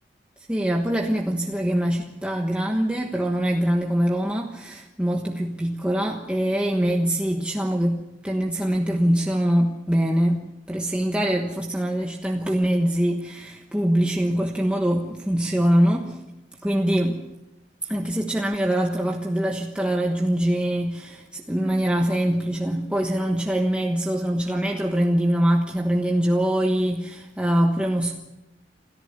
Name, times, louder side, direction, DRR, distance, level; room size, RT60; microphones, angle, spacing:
voice 1, 0.5-16.2 16.6-17.2 17.8-28.2, equal, 5° right, 1.3 m, -23 dB
27.5 x 14.5 x 7.0 m
head